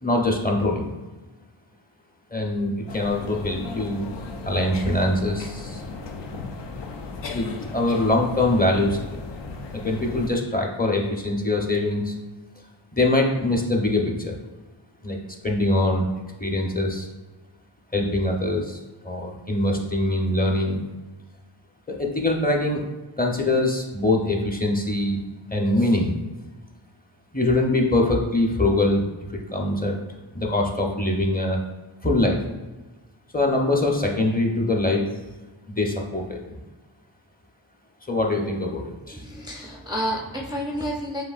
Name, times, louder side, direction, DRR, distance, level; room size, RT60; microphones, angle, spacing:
voice 1, 0.0-0.9 2.3-4.1 4.4-5.8 7.3-7.4 7.7-9.0 9.7-12.1 12.9-14.3 15.0-15.2 15.4-16.1 16.4-17.1 17.9-20.8 21.9-22.8 23.2-25.2 25.5-26.1 27.3-29.0 29.3-30.0 30.3-31.6 32.0-32.4 33.3-35.0 35.7-36.6 38.1-39.2, left 2 dB, 20° left, 0 dB, 0.8 m, -23 dB
sound 1, 2.9-10.3, left 3 dB, 60° left, 0.6 m, -36 dB
voice 2, 39.1-41.2, equal, 10° right, -2 dB, 0.5 m, -30 dB
7.6 x 2.6 x 2.5 m, 1.2 s
wide cardioid pair, 55°, 49 cm